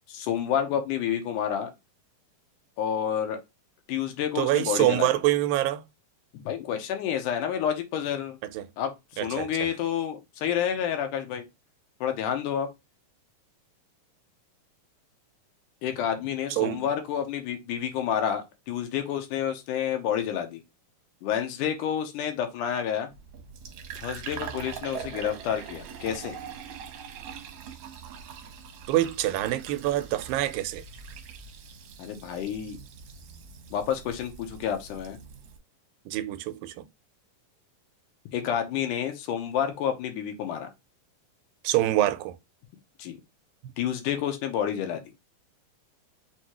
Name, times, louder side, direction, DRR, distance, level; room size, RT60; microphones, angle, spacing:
voice 1, 0.1-1.7 2.8-3.4 3.9-5.1 6.3-8.4 8.8-11.5 12.0-12.7 15.8-20.6 21.2-23.1 24.0-26.4 32.0-32.8 33.7-35.2 38.3-40.7 43.0-43.2 43.8-45.0, left 9 dB, 75° left, 2.3 m, -29 dB
voice 2, 4.4-5.8 8.5-8.7 9.2-9.5 16.5-16.9 28.9-30.8 36.1-36.8 41.6-42.4, right 14 dB, 90° right, 2.3 m, -25 dB
Fill (with liquid), 23.1-35.6, right 7 dB, 70° right, 1.5 m, -42 dB
6.0 x 2.8 x 2.9 m
omnidirectional pair, 3.9 m